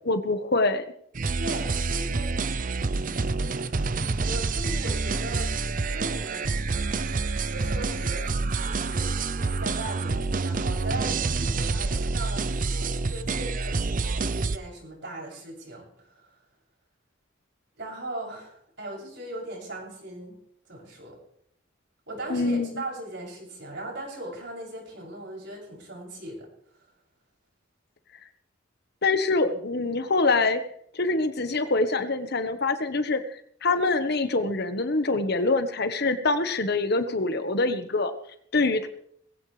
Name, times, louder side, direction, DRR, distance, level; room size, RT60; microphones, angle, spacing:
voice 1, 0.1-0.8 22.3-22.7 29.0-30.6 30.9-33.2 33.6-38.1 38.5-38.9, left 3 dB, 55° left, 9 dB, 1.3 m, -24 dB
sound 1, 1.1-14.6, right 3 dB, 45° right, 0.6 m, -27 dB
voice 2, 1.4-2.4 3.3-5.5 5.9-6.5 7.4-8.2 8.6-16.3 17.8-20.4 20.7-21.2 22.1-26.5, right 1 dB, 65° right, -2 dB, 7.5 m, -38 dB
20.5 x 16.0 x 3.4 m, 0.68 s
head